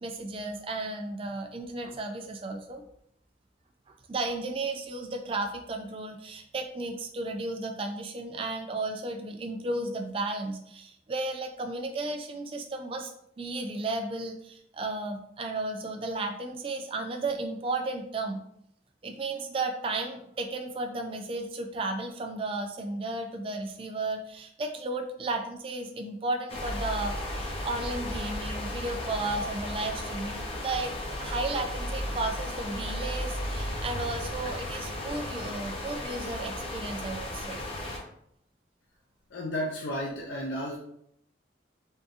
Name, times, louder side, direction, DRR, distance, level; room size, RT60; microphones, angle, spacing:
voice 1, 0.0-2.8 3.9-13.1 13.4-18.4 19.0-37.6, right 2 dB, 30° right, 4 dB, 0.3 m, -34 dB
sound 1, 26.5-38.0, left 1 dB, 30° left, 0.6 m, -35 dB
voice 2, 39.3-40.8, equal, 85° left, -2 dB, 0.5 m, -32 dB
3.6 x 2.7 x 2.5 m, 0.72 s
head